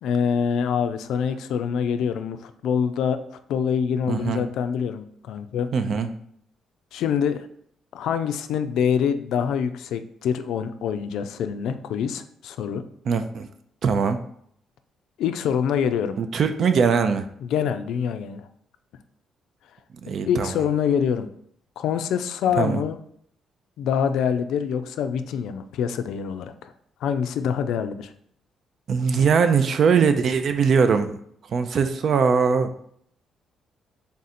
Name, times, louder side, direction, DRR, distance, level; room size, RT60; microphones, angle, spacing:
voice 1, 0.0-5.7 6.9-7.5 7.9-12.8 15.2-16.2 17.4-18.5 20.3-21.3 21.8-23.0 23.8-26.7 27.0-28.1, left 7 dB, 80° left, 9 dB, 0.3 m, -25 dB
voice 2, 4.1-4.4 5.7-6.1 13.1-13.5 13.8-14.2 16.2-17.3 20.0-20.5 22.6-22.8 28.9-31.2 31.5-32.7, right 6 dB, 60° right, 8 dB, 0.4 m, -21 dB
3.5 x 2.5 x 4.1 m, 0.66 s
cardioid pair, 90°, 0 cm